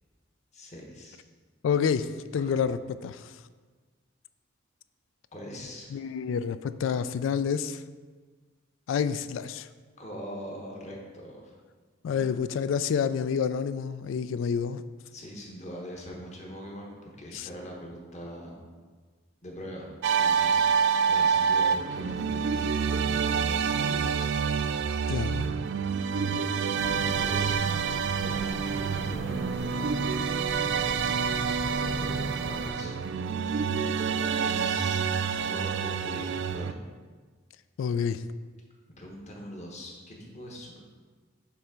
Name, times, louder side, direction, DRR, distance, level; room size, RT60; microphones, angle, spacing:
voice 1, 0.5-1.2 2.4-2.5 5.3-5.9 10.0-11.5 12.0-12.3 15.1-16.9 17.2-18.6 19.4-19.9 20.1-20.7 21.1-24.3 26.2-27.6 28.1-30.1 30.5-31.1 31.4-32.9 34.4-35.0 35.4-36.8 39.0-40.8, equal, 35° left, -1 dB, 1.2 m, -42 dB
voice 2, 1.6-3.3 5.9-7.8 8.9-9.7 12.0-14.8 17.3-17.5 25.1-25.5 37.8-38.2, left 7 dB, 75° left, 13 dB, 0.3 m, -28 dB
sound 1, 20.0-36.7, right 6 dB, 60° right, 0.3 m, -27 dB
sound 2, 26.8-32.7, right 2 dB, 90° right, 0.8 m, -36 dB
7.1 x 3.4 x 5.2 m, 1.4 s
head